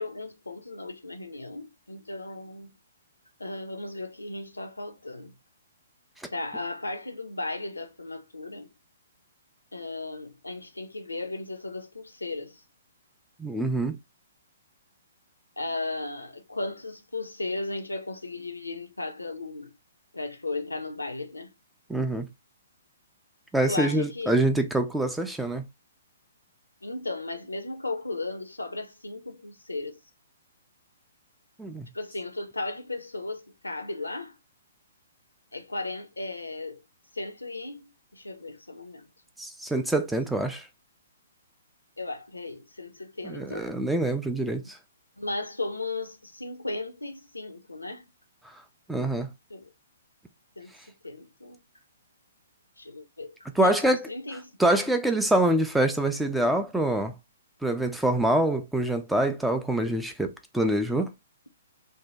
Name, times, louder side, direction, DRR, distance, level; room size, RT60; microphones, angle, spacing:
voice 1, 0.0-2.8 3.4-5.4 6.3-8.7 9.7-12.6 15.6-19.7 20.1-21.6 23.7-24.4 26.8-30.0 31.9-34.4 35.5-36.8 37.1-39.1 42.0-43.7 45.2-48.1 49.5-49.7 50.6-51.6 52.8-54.5, left 2 dB, 80° left, 0.6 m, -36 dB
voice 2, 13.4-14.0 21.9-22.3 23.5-25.6 31.6-31.9 39.4-40.6 43.2-44.8 48.9-49.3 53.6-54.1 54.6-57.1 57.6-61.1, right 1 dB, 5° right, 0.4 m, -25 dB
2.7 x 2.1 x 3.3 m
figure-of-eight pair, 120°, 0 cm